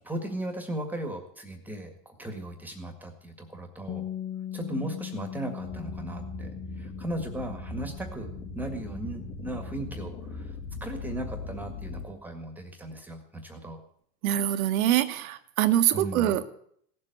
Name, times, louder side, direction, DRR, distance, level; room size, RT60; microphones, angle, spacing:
voice 1, 0.0-4.1 4.5-8.3 8.5-10.5 10.8-13.8 15.9-16.3, right 1 dB, 5° right, 5 dB, 1.8 m, -37 dB
Bass guitar, 3.9-10.1, left 11 dB, 15° left, 0.6 m, -40 dB
sound 1, 5.6-12.1, left 2 dB, 40° left, 2.9 m, -40 dB
voice 2, 14.2-16.5, right 12 dB, 65° right, 9 dB, 1.5 m, -24 dB
17.0 x 7.7 x 9.1 m, 0.66 s
supercardioid pair, 155°, 45 cm